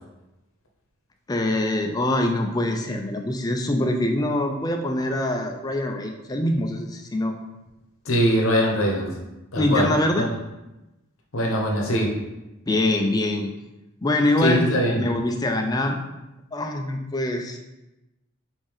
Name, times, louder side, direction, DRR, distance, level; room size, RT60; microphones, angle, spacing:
voice 1, 1.3-7.3 9.6-10.3 12.7-13.5 14.0-14.7 15.0-16.0 16.5-17.6, left 1 dB, 20° left, 3 dB, 0.4 m, -24 dB
voice 2, 8.0-9.1 9.5-9.9 10.2-10.3 11.3-12.2 14.4-15.0, equal, 70° left, 0 dB, 0.9 m, -22 dB
5.2 x 2.7 x 3.5 m, 0.98 s
head